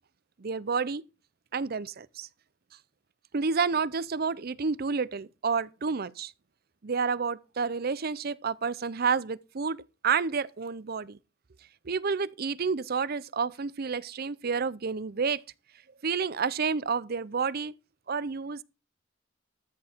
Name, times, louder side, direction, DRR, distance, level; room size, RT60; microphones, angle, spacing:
voice 1, 0.4-1.0 1.5-2.3 3.3-6.3 6.8-9.8 10.0-11.2 11.8-15.4 16.0-17.7 18.1-18.6, right 5 dB, 50° right, 0.6 m, -29 dB
13.5 x 7.7 x 4.5 m
head